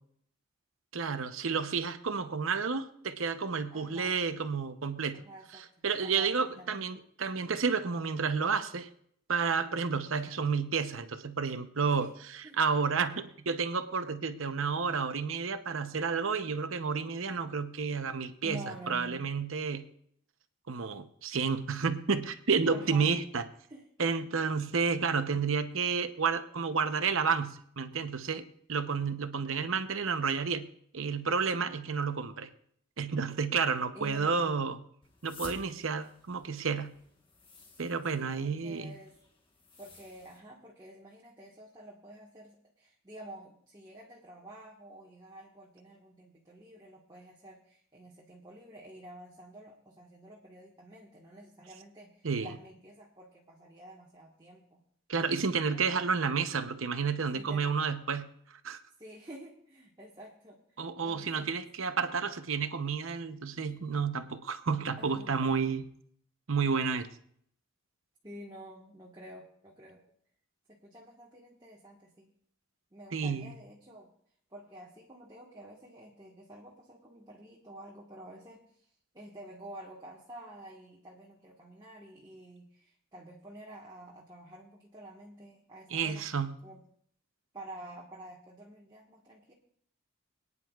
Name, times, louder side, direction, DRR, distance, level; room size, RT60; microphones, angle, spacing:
voice 1, 0.9-5.2 5.5-8.9 9.3-19.9 20.7-23.4 24.0-30.7 30.9-32.5 33.0-34.8 35.2-36.9 37.8-38.9 52.2-52.5 55.1-58.3 58.6-58.8 60.8-65.8 66.5-67.1 73.1-73.5 85.9-86.5, right 5 dB, 75° right, 9 dB, 0.8 m, -31 dB
voice 2, 3.7-4.2 5.1-6.8 11.9-12.1 12.4-12.6 18.4-19.2 22.7-23.1 23.7-23.9 33.9-34.6 38.1-39.1 39.8-54.8 55.7-55.8 57.2-57.7 59.0-61.6 65.0-65.6 68.2-70.0 70.7-72.3 72.9-74.1 74.5-78.9 79.1-86.3 86.6-86.8 87.5-89.5, right 1 dB, 20° right, -4 dB, 1.4 m, -49 dB
sound 1, 35.0-40.4, left 3 dB, 25° left, 1.3 m, -53 dB
23.0 x 9.8 x 2.4 m, 0.64 s
head